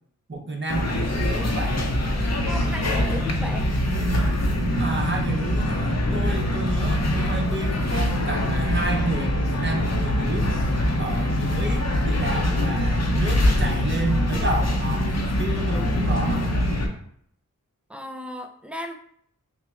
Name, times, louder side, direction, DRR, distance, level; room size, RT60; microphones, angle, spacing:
voice 1, 0.3-1.9 4.8-10.5 11.0-15.1 15.4-16.5, right 2 dB, 35° right, 0 dB, 0.8 m, -30 dB
sound 1, 0.7-16.9, left 1 dB, 50° left, 0.6 m, -23 dB
voice 2, 2.4-3.7 17.9-18.9, equal, 5° right, 5 dB, 0.4 m, -35 dB
Brass instrument, 8.0-12.4, left 2 dB, 85° left, 0.8 m, -40 dB
5.6 x 2.1 x 2.5 m, 0.67 s
wide cardioid pair, 60°, 33 cm